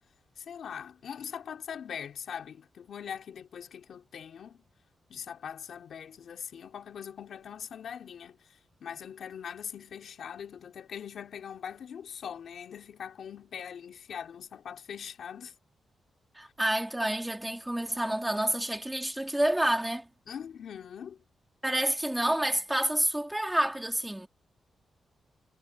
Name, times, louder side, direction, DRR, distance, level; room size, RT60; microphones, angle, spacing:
voice 1, 0.4-4.6 5.1-15.5 20.3-21.2 22.3-22.6, left 8 dB, 75° left, 3.5 m, -42 dB
voice 2, 16.3-20.1 21.6-24.3, right 1 dB, 10° right, 2.8 m, -28 dB
cardioid pair, 105°, 0 cm